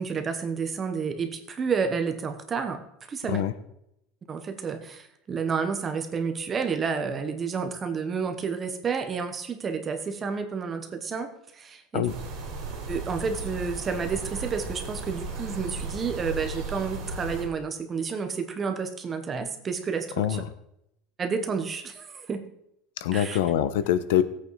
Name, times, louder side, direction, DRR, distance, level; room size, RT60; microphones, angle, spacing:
voice 1, 0.0-2.8 3.1-3.4 4.3-12.1 12.9-20.4 21.2-22.4 23.1-23.4, right 5 dB, 15° right, 8 dB, 1.1 m, -30 dB
sound 1, 12.1-17.5, right 3 dB, 40° right, 3.5 m, -35 dB
voice 2, 23.0-24.2, left 11 dB, 80° left, 13 dB, 0.9 m, -24 dB
15.5 x 8.4 x 4.7 m, 0.80 s
cardioid pair, 180°, 0 cm